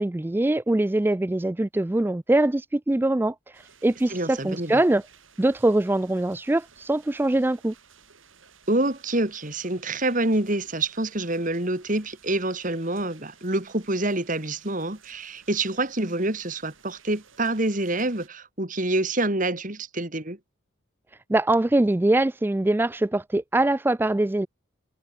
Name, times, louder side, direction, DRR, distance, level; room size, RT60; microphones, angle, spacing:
voice 1, 0.0-3.3 3.8-5.0 5.4-7.7 21.3-24.5, right 1 dB, 10° right, 0.3 m, -23 dB
sound 1, 3.5-18.3, right 7 dB, 75° right, 7.7 m, -55 dB
voice 2, 4.1-4.8 8.7-20.4, right 2 dB, 40° right, 2.6 m, -27 dB
head